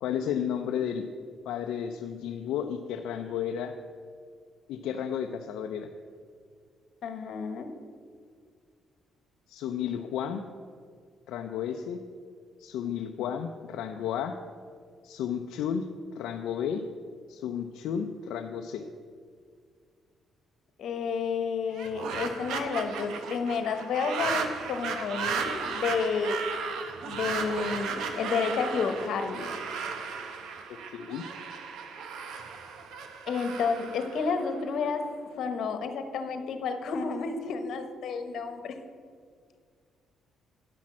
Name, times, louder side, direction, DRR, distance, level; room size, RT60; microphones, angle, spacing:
voice 1, 0.0-1.1 1.5-3.7 4.7-5.9 9.5-10.4 11.3-12.0 12.6-14.4 15.0-15.9 16.2-16.8 17.3-18.9 30.7-31.2, left 8 dB, 85° left, 4 dB, 0.5 m, -32 dB
voice 2, 7.0-7.7 12.8-12.9 20.8-26.4 27.0-29.5 33.3-35.1 35.4-38.7, left 5 dB, 70° left, 7 dB, 1.1 m, -31 dB
sound 1, 21.7-34.9, right 5 dB, 85° right, 1.0 m, -35 dB
9.8 x 5.9 x 7.4 m, 2.1 s
cardioid pair, 90°, 0 cm